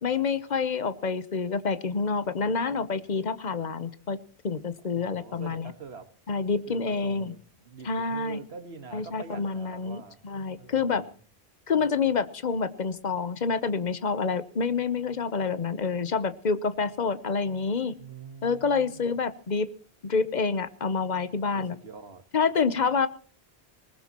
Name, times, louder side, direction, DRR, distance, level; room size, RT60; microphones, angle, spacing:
voice 1, 0.0-4.2 4.4-5.7 6.3-7.3 7.8-8.4 8.9-11.0 11.7-17.9 18.4-19.7 20.0-21.8 22.3-23.1, left 5 dB, 45° left, 1.0 m, -27 dB
voice 2, 4.9-6.1 6.7-10.2 10.6-11.2 18.0-19.0 21.5-22.3, right 6 dB, 75° right, 1.8 m, -44 dB
20.5 x 19.5 x 3.0 m
omnidirectional pair, 1.1 m